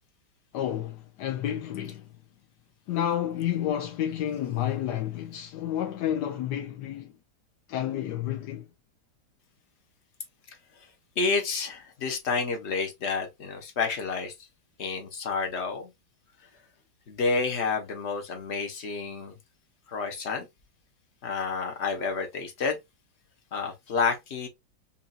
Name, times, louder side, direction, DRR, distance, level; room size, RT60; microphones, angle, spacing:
voice 1, 0.5-2.1 2.9-7.1 7.7-8.6, left 11 dB, 70° left, 1.1 m, -30 dB
voice 2, 11.2-14.3 14.8-15.9 17.1-19.4 19.9-20.5 21.2-22.8 23.5-24.5, left 4 dB, 45° left, 1.0 m, -29 dB
5.6 x 2.6 x 2.4 m
omnidirectional pair, 2.1 m